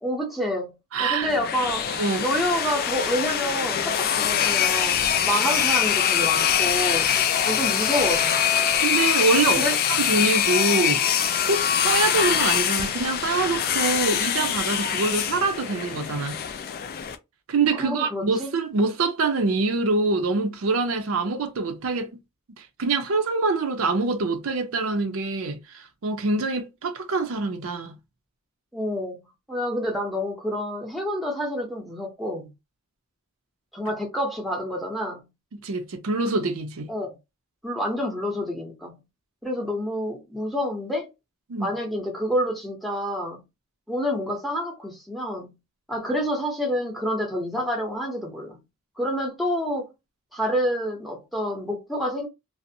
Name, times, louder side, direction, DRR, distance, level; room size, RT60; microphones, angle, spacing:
voice 1, 0.0-1.9 2.2-7.1 7.4-8.4 9.5-9.8 17.7-18.5 28.7-32.5 33.7-35.3 36.9-37.2 37.6-39.0 39.4-41.1 41.6-43.4 43.9-45.5 45.9-48.6 49.0-49.9 50.3-52.3, equal, ahead, 0.6 m, -28 dB
voice 2, 0.9-1.3 1.9-2.3 8.8-11.0 11.5-16.4 17.5-22.2 22.6-28.0 35.5-36.9 41.5-41.7, right 3 dB, 65° right, 0.5 m, -25 dB
sound 1, 1.2-17.2, left 9 dB, 45° left, 0.3 m, -23 dB
sound 2, 9.8-11.6 12.6-15.1, left 8 dB, 85° left, 0.7 m, -43 dB
2.5 x 2.0 x 2.6 m
head